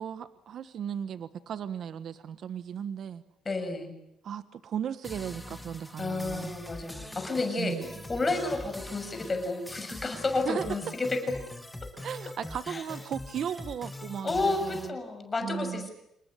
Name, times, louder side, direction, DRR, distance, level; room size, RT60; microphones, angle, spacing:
voice 1, 0.0-3.2 4.2-6.6 7.6-7.9 10.4-10.6 12.0-15.0 15.4-15.9, right 8 dB, 60° right, 13 dB, 1.3 m, -36 dB
voice 2, 3.4-3.9 6.0-7.8 8.1-11.4 11.8-11.9 12.7-12.8 14.2-15.9, left 3 dB, 25° left, 7 dB, 6.6 m, -31 dB
sound 1, 5.0-14.9, left 1 dB, 5° left, 2.0 m, -43 dB
27.5 x 20.5 x 10.0 m, 0.80 s
cardioid pair, 120°, 0 cm